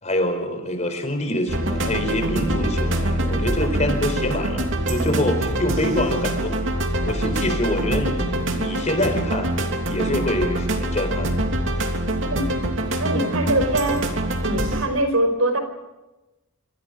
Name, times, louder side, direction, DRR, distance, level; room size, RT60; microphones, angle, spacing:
voice 1, 0.0-6.6 7.0-9.5 9.9-11.4, left 1 dB, 35° left, 6 dB, 4.5 m, -25 dB
sound 1, 1.5-14.9, right 1 dB, 60° right, 3.2 m, -24 dB
voice 2, 13.0-14.1 14.4-15.6, right 1 dB, 80° right, 8 dB, 5.1 m, -22 dB
27.0 x 26.0 x 5.3 m, 1.0 s
head